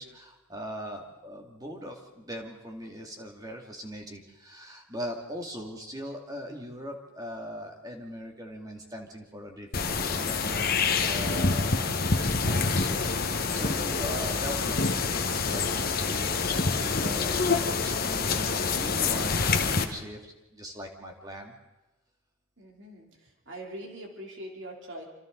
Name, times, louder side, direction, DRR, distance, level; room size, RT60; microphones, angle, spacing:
voice 1, 0.0-21.5, equal, 20° right, 2 dB, 2.4 m, -40 dB
sound 1, 9.7-19.8, left 4 dB, 45° left, 1.4 m, -27 dB
voice 2, 22.6-25.1, right 1 dB, 60° right, 0 dB, 3.3 m, -42 dB
27.0 x 26.0 x 4.0 m, 1.0 s
head